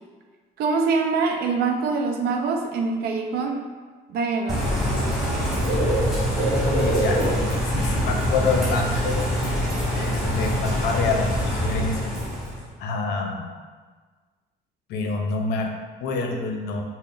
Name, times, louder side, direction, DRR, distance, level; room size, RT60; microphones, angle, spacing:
voice 1, 0.6-3.6 4.1-4.7, right 4 dB, 70° right, 3 dB, 0.5 m, -24 dB
Bird / Rain, 4.5-12.6, equal, ahead, 1.1 m, -24 dB
voice 2, 6.5-7.2 7.5-9.2 9.9-12.1 12.8-13.5 14.9-15.7 16.0-16.8, left 4 dB, 80° left, 3 dB, 0.5 m, -27 dB
3.7 x 2.1 x 3.8 m, 1.4 s
cardioid pair, 110°, 17 cm